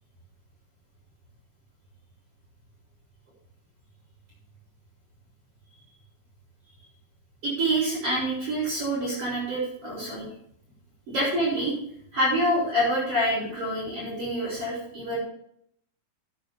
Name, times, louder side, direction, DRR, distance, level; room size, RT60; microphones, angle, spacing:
voice 1, 7.4-10.3 11.1-11.7 12.1-15.2, right 1 dB, 30° right, -10 dB, 6.6 m, -26 dB
13.5 x 10.5 x 3.6 m, 0.70 s
omnidirectional pair, 5.2 m